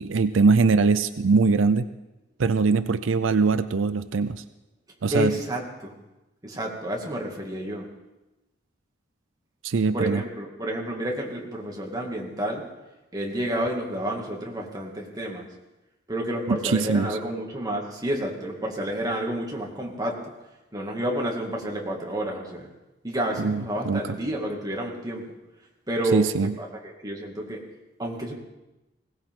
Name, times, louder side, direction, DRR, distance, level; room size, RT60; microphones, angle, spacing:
voice 1, 0.0-1.9 2.4-4.4 5.0-5.3 9.6-10.2 16.5-17.2 23.4-24.0 26.1-26.5, right 4 dB, 85° right, 12 dB, 0.5 m, -22 dB
voice 2, 5.1-5.9 6.4-7.9 9.9-12.7 13.1-15.5 16.1-20.3 20.7-22.7 23.0-25.2 25.9-27.6 28.0-28.3, right 1 dB, 20° right, -1 dB, 2.4 m, -30 dB
20.5 x 17.5 x 3.8 m, 1.0 s
head